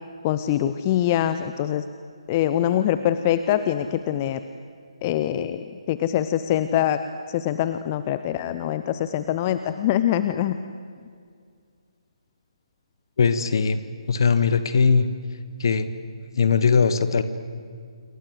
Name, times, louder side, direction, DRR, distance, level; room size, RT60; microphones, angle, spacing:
voice 1, 0.2-1.8 2.3-4.4 5.0-7.0 7.3-10.6, left 11 dB, 25° left, 11 dB, 0.8 m, -24 dB
voice 2, 13.2-13.8 14.1-15.1 15.6-15.9 16.3-17.2, left 5 dB, 50° left, 12 dB, 1.7 m, -19 dB
28.0 x 24.5 x 8.0 m, 2.2 s
figure-of-eight pair, 140°, 3 cm